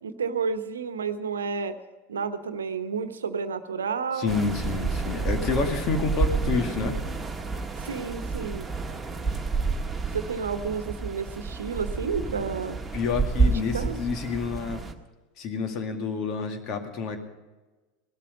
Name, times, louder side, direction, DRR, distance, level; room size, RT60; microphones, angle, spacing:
voice 1, 0.0-1.7 2.1-4.4 7.8-8.7 10.1-12.8 13.4-14.0, right 5 dB, 80° right, 10 dB, 1.0 m, -31 dB
voice 2, 4.2-6.9 12.9-14.8 15.4-17.2, left 4 dB, 45° left, 5 dB, 2.2 m, -28 dB
sound 1, 4.3-14.9, right 4 dB, 10° right, 1.6 m, -29 dB
17.5 x 12.5 x 5.3 m, 1.2 s
figure-of-eight pair, 80°, 0 cm